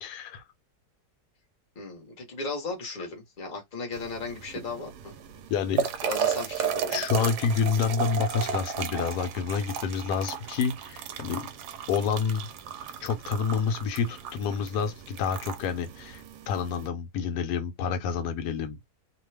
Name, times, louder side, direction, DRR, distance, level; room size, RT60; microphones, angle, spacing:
voice 1, 0.0-0.4 5.5-5.9 6.9-11.5 11.9-12.5 13.0-18.8, left 6 dB, 90° left, 1.2 m, -28 dB
voice 2, 1.7-5.1 6.0-7.0, left 3 dB, 35° left, 1.1 m, -36 dB
sound 1, 3.9-16.9, right 8 dB, 85° right, 1.1 m, -34 dB
2.8 x 2.2 x 3.2 m
omnidirectional pair, 1.7 m